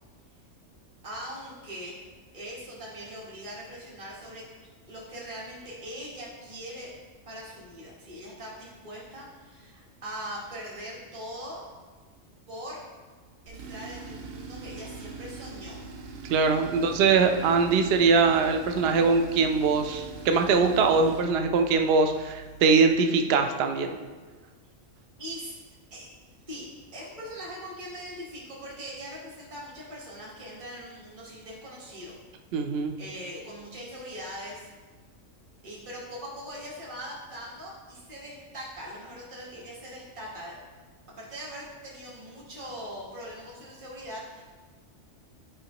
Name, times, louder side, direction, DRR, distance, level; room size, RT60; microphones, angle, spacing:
voice 1, 1.0-2.1 2.3-4.4 4.9-6.9 7.2-11.7 12.5-12.8 13.4-15.8 16.6-16.9 25.2-25.6 25.9-26.1 26.5-32.1 32.7-34.7 35.6-40.5 41.2-44.4, equal, 25° right, -6 dB, 1.4 m, -41 dB
Tools, 13.5-22.9, right 4 dB, 75° right, 1.0 m, -43 dB
voice 2, 16.3-23.9 32.5-32.9, right 4 dB, 60° right, 6 dB, 0.7 m, -22 dB
9.9 x 5.1 x 2.9 m, 1.4 s
omnidirectional pair, 1.4 m